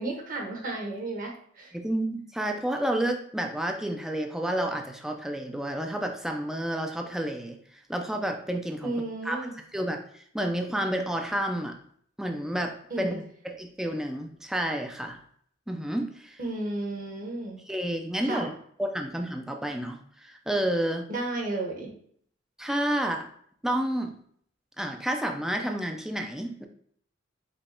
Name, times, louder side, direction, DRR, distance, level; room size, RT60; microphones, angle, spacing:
voice 1, 0.0-1.7 8.8-9.5 12.9-13.2 16.4-17.6 18.2-18.5 21.1-21.9, right 2 dB, 45° right, 0 dB, 1.1 m, -33 dB
voice 2, 1.7-8.9 9.2-9.5 9.7-10.0 10.3-11.7 12.2-15.2 15.7-16.4 17.7-18.5 18.8-21.1 22.6-23.3 23.6-24.1 24.8-26.6, right 1 dB, 5° right, 3 dB, 0.4 m, -30 dB
5.2 x 2.3 x 4.3 m, 0.62 s
head